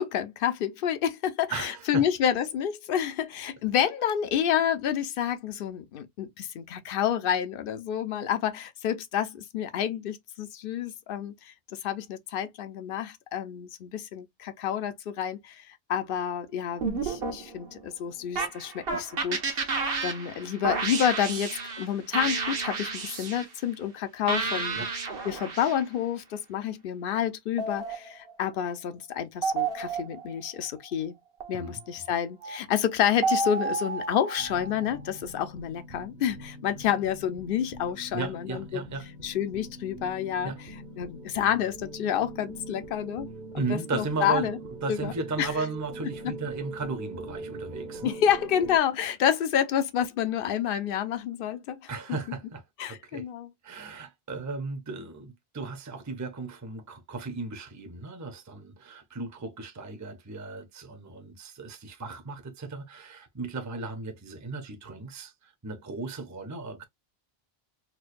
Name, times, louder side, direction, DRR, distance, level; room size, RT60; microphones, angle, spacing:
voice 1, 0.0-19.7 20.0-24.9 25.2-31.2 31.5-38.8 39.2-40.5 41.0-43.3 43.5-44.6 44.9-45.1 45.4-45.5 48.0-51.9 52.8-53.5, left 9 dB, 65° left, 0.8 m, -29 dB
voice 2, 1.5-2.1 24.8-24.9 31.5-31.8 38.1-39.1 40.4-40.6 43.6-44.5 44.8-48.2 51.9-53.3 53.6-66.8, right 4 dB, 20° right, 0.6 m, -36 dB
sound 1, 16.8-17.8 18.4-21.9 22.1-23.5 24.3-25.8 27.6-28.5 29.4-30.4 31.4-31.7 32.4-32.6 33.2-35.0, right 4 dB, 70° right, 1.2 m, -31 dB
sound 2, 34.4-48.8, right 2 dB, 50° right, 0.9 m, -42 dB
4.4 x 2.2 x 2.5 m
omnidirectional pair, 1.0 m